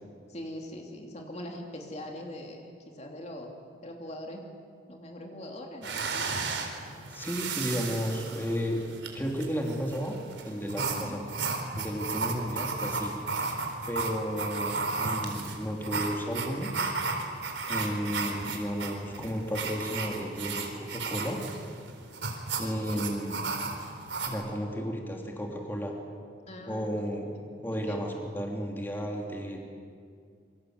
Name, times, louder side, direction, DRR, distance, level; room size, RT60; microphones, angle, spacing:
voice 1, 0.3-3.5 3.8-4.5 4.9-6.4 10.8-11.1 12.8-13.0 22.6-23.1 26.5-26.9 27.7-28.0, left 1 dB, 35° left, 1 dB, 2.9 m, -42 dB
sound 1, 5.8-24.3, right 4 dB, 85° right, 4.0 m, -34 dB
voice 2, 7.1-8.8 9.1-10.1 10.4-11.2 11.7-13.1 13.9-16.9 17.7-21.4 22.6-23.4 24.2-25.9 26.7-27.3 27.6-29.6, equal, 10° left, 1 dB, 3.2 m, -33 dB
27.0 x 24.5 x 8.1 m, 2.3 s
head